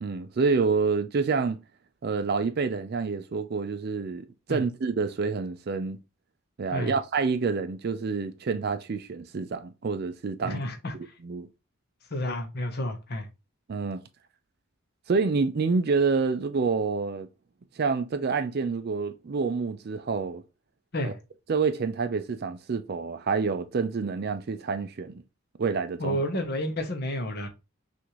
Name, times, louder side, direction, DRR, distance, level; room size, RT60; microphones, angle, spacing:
voice 1, 0.0-1.6 2.0-6.0 6.6-10.6 11.2-11.5 13.7-14.0 15.1-17.3 17.8-20.4 21.0-21.1 21.5-25.2 25.6-26.2, right 4 dB, 45° right, 0.4 m, -28 dB
voice 2, 10.4-10.9 12.1-13.3 20.9-21.2 26.0-27.5, left 1 dB, 45° left, 0.8 m, -30 dB
6.0 x 2.5 x 3.0 m
head